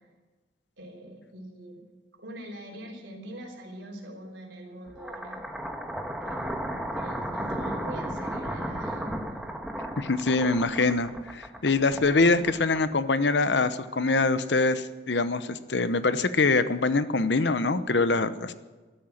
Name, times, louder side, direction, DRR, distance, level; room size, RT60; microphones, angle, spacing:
voice 1, 0.8-1.8 2.2-5.4 6.2-9.6, right 1 dB, 90° right, 0 dB, 3.6 m, -43 dB
sound 1, 4.9-13.1, right 1 dB, 5° right, 1.3 m, -34 dB
voice 2, 10.0-18.5, left 3 dB, 70° left, 12 dB, 0.9 m, -24 dB
13.0 x 13.0 x 7.3 m, 1.2 s
head